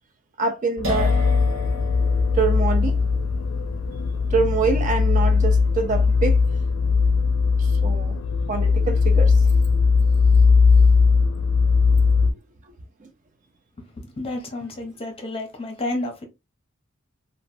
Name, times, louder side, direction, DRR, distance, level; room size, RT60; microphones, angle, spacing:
voice 1, 0.4-1.1 2.3-3.0 4.3-6.4 7.6-8.2 8.5-9.3 12.2-12.3, right 5 dB, 35° right, 0.4 m, -25 dB
sound 1, 0.8-12.3, left 4 dB, 70° left, 0.4 m, -19 dB
sound 2, 0.8-8.4, left 2 dB, 70° right, 0.8 m, -35 dB
voice 2, 14.0-16.3, left 2 dB, 25° left, 0.7 m, -30 dB
2.9 x 2.1 x 2.5 m
head